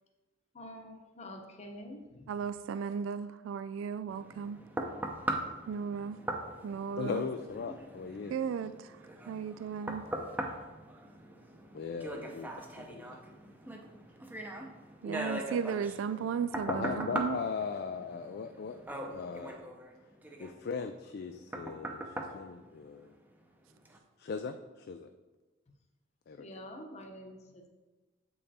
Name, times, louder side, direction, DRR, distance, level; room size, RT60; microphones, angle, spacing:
voice 1, 0.5-2.3 26.4-27.7, left 1 dB, 35° left, 3 dB, 0.9 m, -47 dB
voice 2, 2.3-4.6 5.7-6.2 6.6-7.3 8.3-9.0 9.3-10.1 15.0-17.4, right 7 dB, 80° right, 13 dB, 0.3 m, -35 dB
sound 1, 4.1-23.4 23.9-24.0, right 1 dB, 10° right, 0.7 m, -41 dB
voice 3, 7.0-8.3 11.7-13.2 16.7-19.6 20.4-23.1 24.2-25.1 26.3-26.5, left 5 dB, 55° left, 8 dB, 0.3 m, -39 dB
7.8 x 5.4 x 4.2 m, 1.2 s
head